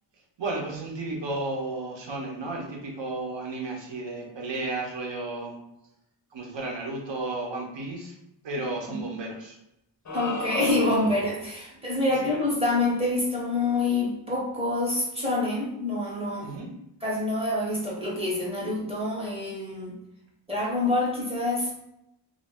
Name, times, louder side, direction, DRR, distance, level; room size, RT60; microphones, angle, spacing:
voice 1, 0.4-5.6 6.3-8.2 8.4-9.6 12.2-12.3 16.4-16.7, right 2 dB, 70° right, 0 dB, 0.8 m, -33 dB
sound 1, 10.1-11.4, left 2 dB, 40° left, 0.5 m, -33 dB
voice 2, 10.1-16.5 17.0-19.9 20.5-21.7, left 2 dB, 15° right, -4 dB, 0.7 m, -26 dB
2.5 x 2.1 x 3.4 m, 0.84 s
wide cardioid pair, 160°, 47 cm